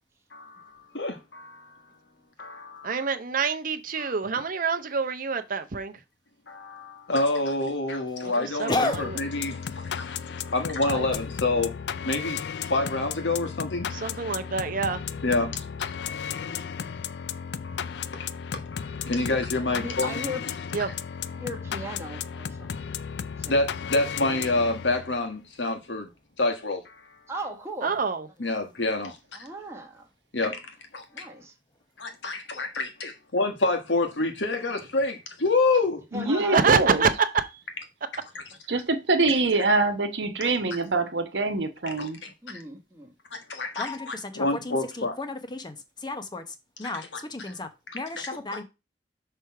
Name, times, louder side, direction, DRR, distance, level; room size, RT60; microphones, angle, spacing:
voice 1, 0.3-1.7 2.4-2.9 4.0-4.1 6.5-10.1 10.5-11.8 12.0-13.9 15.2-15.7 17.6-17.8 18.1-18.2 18.5-20.2 23.5-26.1 26.4-26.9 28.4-29.2 30.3-30.6 30.9-31.2 32.0-36.0 42.0-42.3 43.3-45.2 46.8-47.5 47.9-48.0 48.5-48.6, left 2 dB, 90° left, 1.5 m, -28 dB
voice 2, 2.8-5.9 8.2-9.2 10.8-11.1 13.9-15.0 20.7-20.9 27.8-28.3 36.5-37.6, right 5 dB, 50° right, 0.7 m, -26 dB
voice 3, 8.7-9.0 11.1-11.2 43.7-46.4 46.8-47.0 47.3-47.7 47.9-48.6, left 2 dB, 25° left, 0.9 m, -32 dB
sound 1, 8.9-25.2, left 7 dB, 70° left, 0.4 m, -34 dB
voice 4, 15.1-15.4 16.2-16.7 19.6-20.4 21.3-22.9 23.2-23.5 27.3-27.9 29.3-30.1 31.1-31.5 36.1-36.7 42.4-43.1, equal, 15° right, 1.2 m, -38 dB
voice 5, 36.1-37.0 38.7-42.2, right 3 dB, 70° right, 1.0 m, -24 dB
6.3 x 3.4 x 5.7 m
head